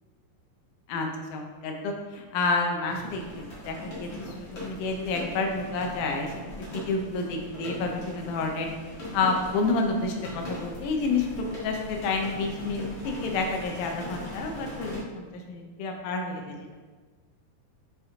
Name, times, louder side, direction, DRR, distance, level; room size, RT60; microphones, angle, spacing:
voice 1, 0.9-6.3 6.6-8.7 9.1-16.8, left 3 dB, 85° left, 2 dB, 1.8 m, -29 dB
sound 1, 2.9-15.0, left 1 dB, 45° left, 1.6 m, -40 dB
8.1 x 3.6 x 3.6 m, 1.4 s
omnidirectional pair, 4.5 m